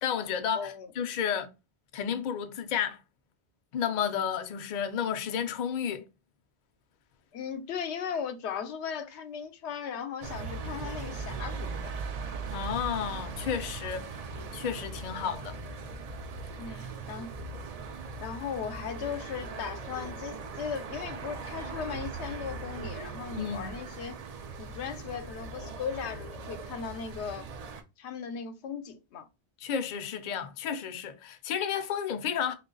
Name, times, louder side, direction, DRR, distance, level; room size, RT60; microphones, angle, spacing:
voice 1, 0.0-1.5 1.9-3.0 3.7-6.1 12.5-14.2 14.5-15.6 16.7-16.8 23.3-23.7 29.6-32.5, left 8 dB, 55° left, 0.5 m, -32 dB
voice 2, 0.5-0.9 7.3-11.9 16.6-17.3 18.2-24.2 24.6-27.5 28.0-29.3, left 7 dB, 90° left, 0.9 m, -37 dB
sound 1, 10.2-27.8, right 4 dB, 60° right, 0.4 m, -39 dB
3.1 x 2.2 x 3.7 m
omnidirectional pair, 1.1 m